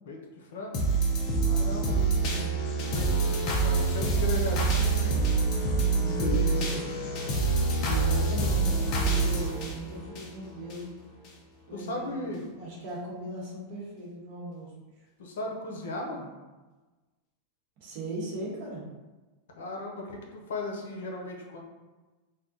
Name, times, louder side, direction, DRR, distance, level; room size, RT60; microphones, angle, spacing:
voice 1, 0.1-0.8 1.4-1.9 2.9-6.8 11.7-12.4 15.2-16.3 19.5-21.6, left 2 dB, 90° left, 1 dB, 0.7 m, -37 dB
sound 1, 0.7-10.8 11.2-11.3, right 3 dB, 35° left, 0.5 m, -26 dB
voice 2, 1.7-3.5 6.0-6.9 7.8-10.9 11.7-12.2 12.6-15.0 17.8-18.8, right 1 dB, 45° right, -4 dB, 1.0 m, -39 dB
2.7 x 2.2 x 3.7 m, 1.2 s
supercardioid pair, 165°, 0 cm